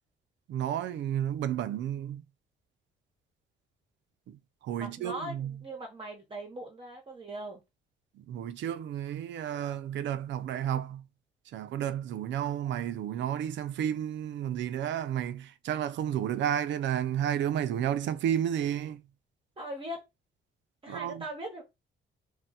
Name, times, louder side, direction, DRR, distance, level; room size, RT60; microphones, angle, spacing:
voice 1, 0.5-2.2 4.3-5.6 8.1-11.0 11.5-19.0 20.9-21.2, right 10 dB, 65° right, 0.4 m, -32 dB
voice 2, 4.8-7.6 19.6-20.0 20.8-21.6, right 1 dB, 25° right, 0.8 m, -40 dB
2.2 x 2.2 x 3.8 m
cardioid pair, 90°, 20 cm